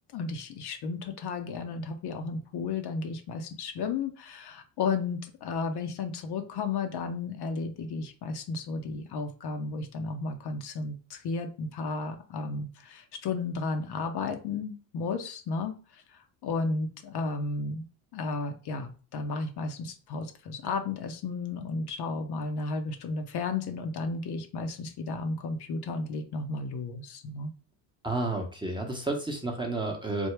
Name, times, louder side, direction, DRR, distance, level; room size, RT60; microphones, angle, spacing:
voice 1, 0.1-17.8 18.1-27.5, left 4 dB, 55° left, 6 dB, 0.7 m, -33 dB
voice 2, 28.0-30.3, right 2 dB, 10° right, 1 dB, 0.8 m, -31 dB
3.4 x 2.1 x 3.2 m, 0.36 s
supercardioid pair, 85°, 48 cm